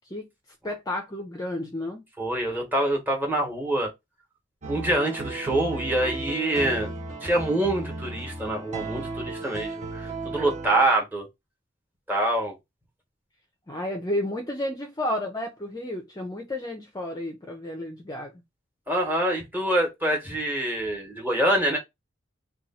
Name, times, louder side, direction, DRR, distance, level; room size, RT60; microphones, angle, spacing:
voice 1, 0.6-2.1 13.7-18.3, left 1 dB, 20° left, 0.5 m, -31 dB
voice 2, 2.2-3.9 4.7-6.9 7.2-11.3 12.1-12.5 18.9-21.8, right 1 dB, 10° right, 1.0 m, -25 dB
sound 1, 4.6-10.8, right 3 dB, 35° right, 0.7 m, -35 dB
2.9 x 2.3 x 4.1 m
head